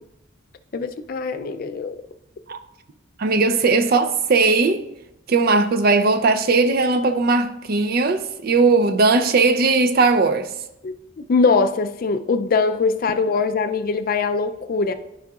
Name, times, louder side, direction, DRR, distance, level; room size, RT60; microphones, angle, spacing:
voice 1, 0.7-1.9 10.8-14.9, left 4 dB, 45° left, 0.4 m, -22 dB
voice 2, 3.2-4.8 5.3-10.5, right 3 dB, 50° right, 0.5 m, -18 dB
12.0 x 4.9 x 2.4 m
head